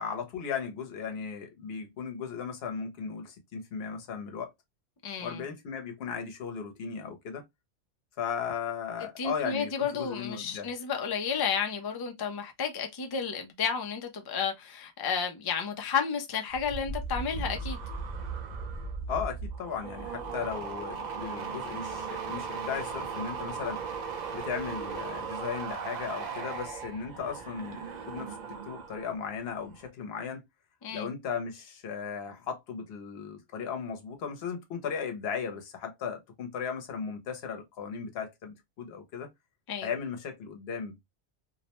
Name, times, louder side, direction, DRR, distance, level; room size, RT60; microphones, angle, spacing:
voice 1, 0.0-4.5 5.2-7.4 8.2-10.7 19.1-23.8 24.3-30.5 30.9-39.3 39.8-41.0, left 6 dB, 70° left, 0.9 m, -36 dB
voice 2, 5.0-5.4 9.2-17.8 30.8-31.1 39.7-39.9, left 6 dB, 40° left, 0.3 m, -32 dB
sound 1, 16.5-29.2 29.5-29.9, right 5 dB, 50° right, 0.6 m, -37 dB
2.5 x 2.1 x 2.8 m
omnidirectional pair, 1.1 m